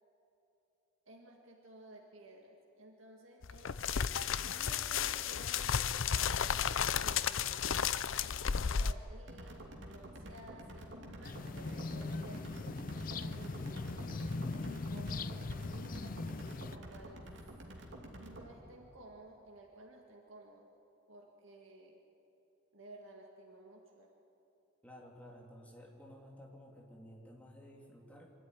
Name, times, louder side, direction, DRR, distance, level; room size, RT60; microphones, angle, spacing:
voice 1, 1.1-3.9 4.4-7.8 8.8-12.4 12.9-17.2 18.1-20.7 21.1-22.0 22.7-24.1, right 1 dB, 90° right, 0 dB, 1.9 m, -55 dB
sound 1, 3.4-8.9, left 7 dB, 85° left, 0.6 m, -33 dB
sound 2, 9.2-18.4, right 1 dB, 65° right, 2.9 m, -49 dB
sound 3, 11.2-16.8, left 3 dB, 45° left, 0.5 m, -40 dB
voice 2, 24.8-28.3, equal, 5° left, -1 dB, 2.8 m, -54 dB
25.0 x 13.0 x 9.9 m, 2.9 s
head